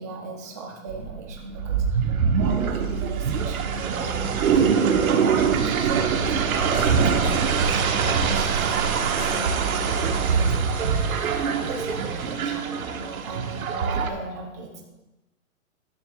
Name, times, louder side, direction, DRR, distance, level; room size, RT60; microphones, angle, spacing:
voice 1, 0.0-14.8, right 2 dB, 15° right, 0 dB, 0.5 m, -38 dB
sound 1, 0.9-14.1, right 6 dB, 85° right, 1.4 m, -23 dB
sound 2, 6.6-12.6, left 2 dB, 35° left, 4.0 m, -46 dB
14.5 x 10.5 x 2.4 m, 1.1 s
hypercardioid pair, 170°, 41 cm